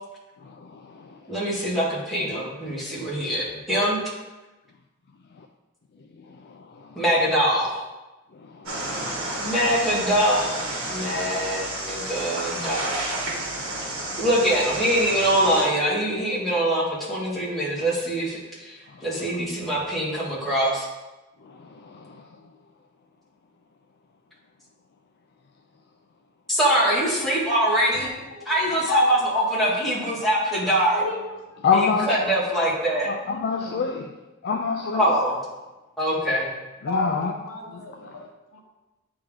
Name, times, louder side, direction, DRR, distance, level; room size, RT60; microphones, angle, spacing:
voice 1, 0.4-1.2 5.4-5.5 6.3-7.0 8.4-9.1 11.2-11.3 13.5-14.1 19.0-19.1 21.4-22.2 31.6-32.3 33.1-34.1 34.4-35.1 36.8-37.3, left 5 dB, 50° left, 3 dB, 0.4 m, -28 dB
voice 2, 1.3-4.0 6.9-7.8 9.4-10.6 10.9-12.8 14.2-18.8 19.0-20.9 26.5-28.1 28.4-31.0 31.7-33.1 34.9-35.4 36.0-36.5, right 1 dB, ahead, -8 dB, 1.7 m, -23 dB
sound 1, 8.7-15.7, right 1 dB, 65° right, 1.6 m, -31 dB
voice 3, 27.9-28.6 28.8-29.3 30.9-31.8 32.9-33.9 36.9-38.6, left 3 dB, 70° left, 1 dB, 0.9 m, -32 dB
9.1 x 3.5 x 3.6 m, 1.1 s
head